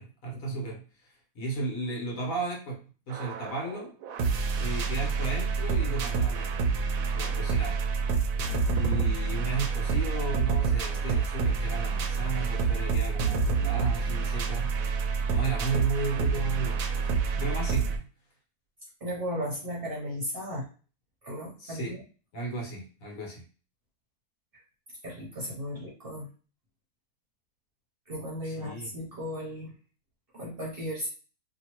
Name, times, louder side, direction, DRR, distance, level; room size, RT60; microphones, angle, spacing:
voice 1, 0.0-3.9 4.6-6.7 7.1-7.8 8.7-15.0 15.3-18.1 21.6-22.0 22.3-23.4 28.4-28.9, right 3 dB, 65° left, -2 dB, 1.5 m, -34 dB
sound 1, 3.1-18.0, right 5 dB, 70° right, 0.9 m, -28 dB
voice 2, 19.0-20.7 21.2-22.0 25.0-26.3 28.1-29.7 30.3-31.1, equal, 45° right, -3 dB, 0.8 m, -35 dB
2.9 x 2.7 x 2.9 m, 0.37 s
omnidirectional pair, 1.6 m